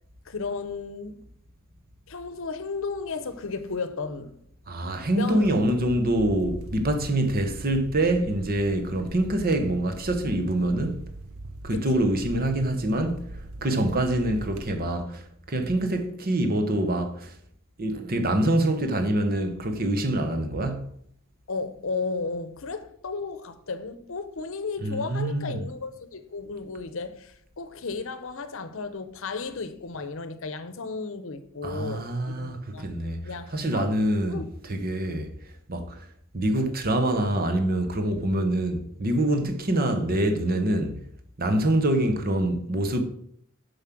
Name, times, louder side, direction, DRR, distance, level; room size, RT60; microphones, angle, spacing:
voice 1, 0.3-1.2 2.1-4.3 5.1-5.7 11.7-12.0 21.5-32.9 33.2-34.4, left 4 dB, 65° left, 0.8 m, -34 dB
voice 2, 4.7-11.0 11.6-13.2 13.6-15.2 15.5-17.3 17.8-20.9 24.8-25.7 31.6-33.2 33.5-34.4 34.7-35.3 35.7-36.0 36.3-41.0 41.4-43.0, right 1 dB, 45° right, 1.1 m, -25 dB
sound 1, 5.4-14.8, right 2 dB, 85° right, 0.7 m, -41 dB
7.3 x 5.5 x 6.0 m
head